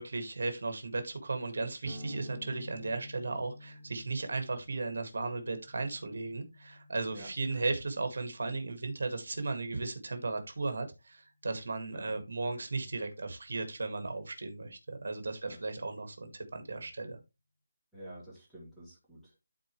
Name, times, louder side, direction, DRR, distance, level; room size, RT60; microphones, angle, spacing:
voice 1, 0.0-17.2, right 3 dB, 60° right, 7 dB, 1.8 m, -36 dB
sound 1, 1.8-9.4, left 1 dB, 25° right, 1.9 m, -51 dB
voice 2, 7.1-7.6 11.9-12.1 15.4-15.6 17.9-19.5, right 1 dB, ahead, -8 dB, 2.2 m, -50 dB
12.5 x 4.3 x 3.1 m, 0.24 s
figure-of-eight pair, 170°, 0 cm